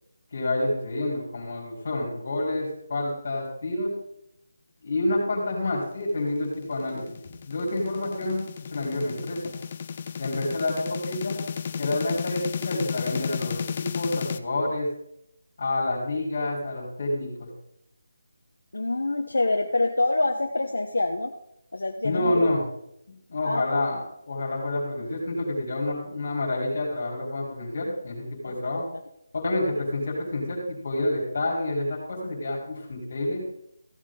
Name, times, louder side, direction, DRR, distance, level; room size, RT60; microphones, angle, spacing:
voice 1, 0.3-3.9 4.8-7.2 7.4-9.5 10.2-11.5 11.8-14.9 15.6-17.5 22.0-22.6 23.3-24.0 24.3-28.9 29.4-33.4, left 1 dB, 50° left, -3 dB, 4.0 m, -28 dB
sound 1, 6.3-14.4, left 7 dB, 35° left, 0.5 m, -33 dB
voice 2, 18.7-21.3 21.7-22.5 23.4-23.9 28.4-28.8, left 2 dB, 75° left, 2 dB, 1.0 m, -26 dB
15.5 x 7.4 x 3.8 m, 0.77 s
figure-of-eight pair, 160°, 0 cm